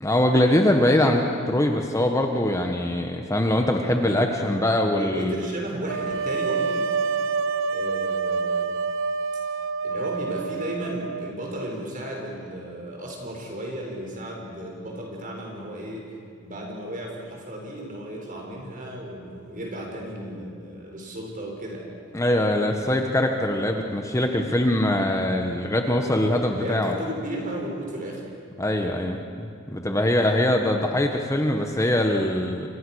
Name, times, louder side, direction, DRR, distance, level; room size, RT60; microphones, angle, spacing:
voice 1, 0.0-5.3 22.1-26.9 28.6-32.7, left 1 dB, 15° left, 3 dB, 1.4 m, -22 dB
voice 2, 5.0-6.9 7.7-8.7 9.8-16.1 16.4-21.9 26.5-28.2, right 1 dB, 40° right, 0 dB, 6.3 m, -34 dB
sound 1, 5.9-11.7, right 5 dB, 70° right, 0.8 m, -27 dB
29.5 x 25.0 x 6.5 m, 2.4 s
head